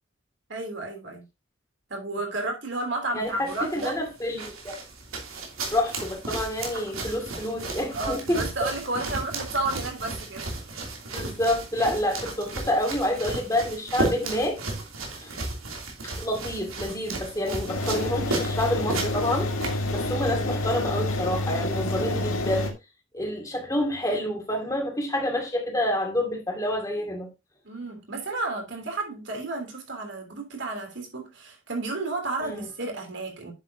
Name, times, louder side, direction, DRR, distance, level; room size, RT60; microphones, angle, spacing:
voice 1, 0.5-1.2 1.9-3.9 7.9-10.5 27.6-33.5, right 2 dB, 60° right, 3.2 m, -32 dB
voice 2, 3.1-4.8 5.7-8.7 11.1-14.6 15.2-15.3 16.0-19.5 19.9-22.7 23.1-27.3 32.4-32.7, left 1 dB, 15° left, 2.2 m, -28 dB
sound 1, 3.2-20.2, right 2 dB, 85° right, 2.9 m, -34 dB
sound 2, 17.7-22.7, left 2 dB, 90° left, 1.9 m, -28 dB
9.9 x 7.3 x 2.8 m
head